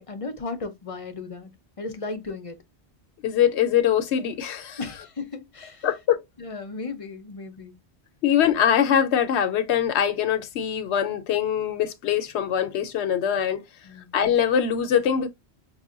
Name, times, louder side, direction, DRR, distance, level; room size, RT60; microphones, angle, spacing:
voice 1, 0.0-1.5 1.8-2.6 4.8-5.9 6.4-7.8 13.8-14.1, left 3 dB, 35° left, 0.6 m, -35 dB
voice 2, 3.2-4.8 5.8-6.2 8.2-13.6 14.1-15.3, left 9 dB, 80° left, 0.9 m, -23 dB
5.5 x 2.2 x 2.4 m
omnidirectional pair, 1.1 m